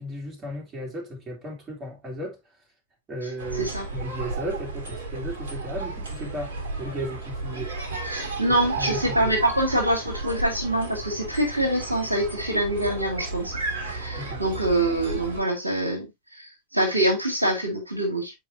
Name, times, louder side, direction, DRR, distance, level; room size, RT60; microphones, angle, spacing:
voice 1, 0.0-2.4 3.1-7.8 8.5-9.3 14.1-14.4, right 1 dB, 20° right, 2.7 m, -35 dB
sound 1, 3.4-15.4, right 3 dB, 60° right, 2.0 m, -33 dB
voice 2, 3.5-3.9 8.0-13.5 13.8-16.1 16.4-18.3, right 1 dB, 85° right, 1.9 m, -25 dB
7.6 x 4.8 x 2.6 m
figure-of-eight pair, 90°, 0 cm